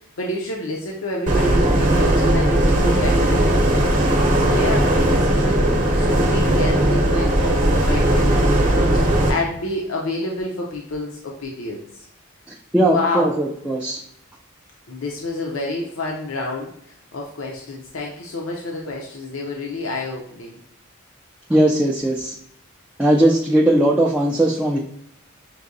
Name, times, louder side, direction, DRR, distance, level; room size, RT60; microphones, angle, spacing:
voice 1, 0.2-3.7 4.4-12.1 12.9-13.4 14.9-20.6, left 2 dB, 70° left, -1 dB, 0.6 m, -29 dB
sound 1, 1.3-9.3, right 1 dB, 40° right, 0.7 m, -18 dB
voice 2, 12.7-14.0 21.5-22.3 23.0-24.8, right 1 dB, 5° right, -2 dB, 0.3 m, -18 dB
6.0 x 2.7 x 2.6 m, 0.71 s
head